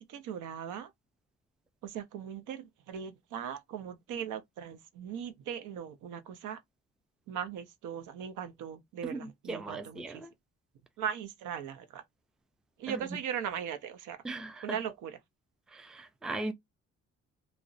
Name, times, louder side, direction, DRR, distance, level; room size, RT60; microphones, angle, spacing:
voice 1, 0.1-0.9 1.8-6.6 7.3-10.2 11.0-12.0 12.8-14.2 14.6-15.2, right 8 dB, 80° right, 0.7 m, -39 dB
voice 2, 9.0-10.3 12.9-13.2 14.2-14.8 15.7-16.5, right 2 dB, ahead, 0.3 m, -38 dB
2.5 x 2.0 x 2.4 m
cardioid pair, 90°, 30 cm